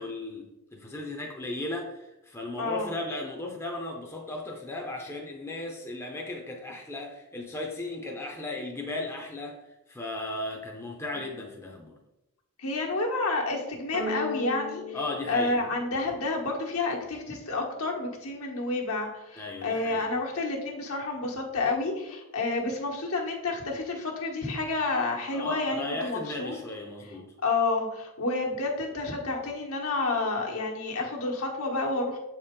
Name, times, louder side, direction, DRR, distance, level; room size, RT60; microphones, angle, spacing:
voice 1, 0.0-9.6 9.9-12.0 14.9-15.8 19.4-20.1 25.3-27.3, left 2 dB, 10° left, 0 dB, 0.6 m, -36 dB
voice 2, 2.6-3.0 12.6-15.0 15.3-26.6 27.0-27.1 27.4-32.2, left 3 dB, 75° left, -1 dB, 1.3 m, -30 dB
sound 1, 13.9-16.5, left 2 dB, 65° right, 1.7 m, -36 dB
7.2 x 4.3 x 3.7 m, 0.94 s
head